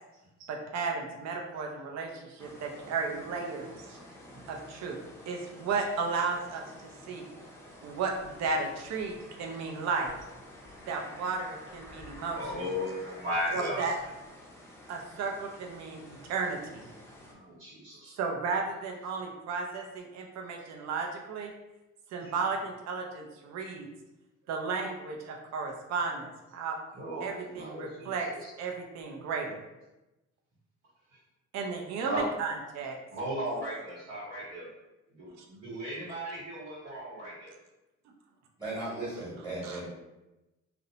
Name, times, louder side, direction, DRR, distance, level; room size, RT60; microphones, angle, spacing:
voice 1, 0.4-4.0 4.5-5.0 5.3-7.2 7.8-10.1 10.9-12.7 13.5-14.0 14.9-16.9 18.2-21.5 22.1-23.9 24.5-26.8 27.2-28.3 28.6-29.6 31.5-32.9 35.4-35.5 39.6-39.8, right 4 dB, 60° right, 1 dB, 0.5 m, -34 dB
sound 1, 2.4-17.3, left 1 dB, 10° left, 0.5 m, -50 dB
voice 2, 12.3-13.9 17.2-18.2 22.2-22.3 26.9-28.5 31.1-31.2 32.1-32.2 33.1-34.7 35.1-37.5, equal, 85° right, -11 dB, 0.9 m, -36 dB
voice 3, 38.6-39.9, right 2 dB, 15° right, -7 dB, 1.1 m, -36 dB
2.5 x 2.0 x 2.7 m, 1.0 s
cardioid pair, 90°, 30 cm